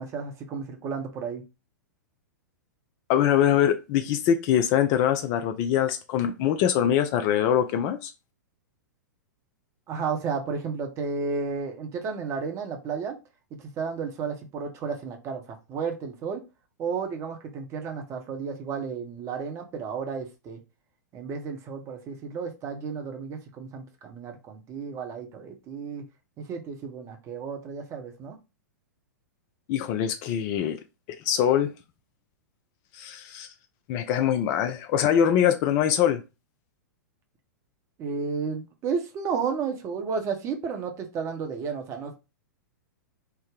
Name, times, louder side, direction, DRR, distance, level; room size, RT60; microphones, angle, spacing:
voice 1, 0.0-1.4 9.9-13.2 13.8-16.4 16.8-20.6 21.1-26.0 26.4-28.4 38.0-42.2, right 5 dB, 30° right, 0.8 m, -32 dB
voice 2, 3.1-8.1 29.7-30.8 31.2-31.7 32.9-33.5 33.9-36.2, left 9 dB, 35° left, 0.4 m, -23 dB
3.3 x 2.1 x 3.6 m
figure-of-eight pair, 105°, 10 cm